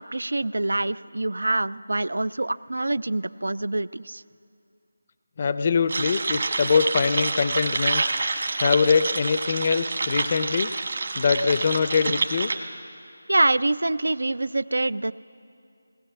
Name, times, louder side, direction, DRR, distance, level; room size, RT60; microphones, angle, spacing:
voice 1, 0.0-4.2 13.3-15.1, right 2 dB, 90° right, 19 dB, 0.4 m, -25 dB
voice 2, 5.4-8.0 8.6-10.7 11.2-12.5, left 5 dB, 30° left, 13 dB, 0.5 m, -23 dB
sound 1, 5.9-12.5, right 3 dB, 55° right, 1.5 m, -27 dB
20.0 x 18.5 x 7.1 m, 2.5 s
figure-of-eight pair, 170°, 0 cm